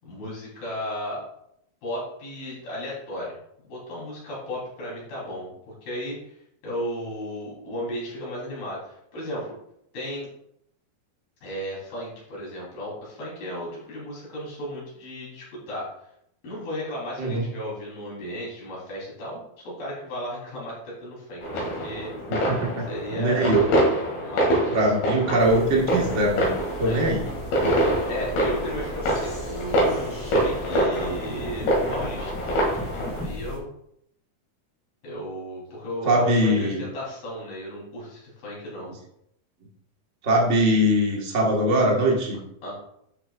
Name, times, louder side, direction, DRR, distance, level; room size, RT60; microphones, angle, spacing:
voice 1, 0.0-1.2 1.8-3.3 3.6-6.4 6.6-9.6 9.9-10.3 11.4-15.9 16.4-22.1 22.9-23.6 24.2-25.2 26.8-27.1 28.1-32.3 33.1-33.7 35.0-38.9 42.6-42.7, equal, 70° left, -5 dB, 5.6 m, -34 dB
sound 1, 21.4-33.2, equal, 90° left, 4.3 m, -26 dB
voice 2, 22.5-23.7 24.7-26.5 26.8-27.2 36.0-36.8 40.2-42.4, right 1 dB, 80° right, -2 dB, 0.6 m, -22 dB
sound 2, 25.4-33.6, left 1 dB, 5° left, 1.8 m, -36 dB
12.0 x 6.6 x 2.5 m, 0.76 s
omnidirectional pair, 4.3 m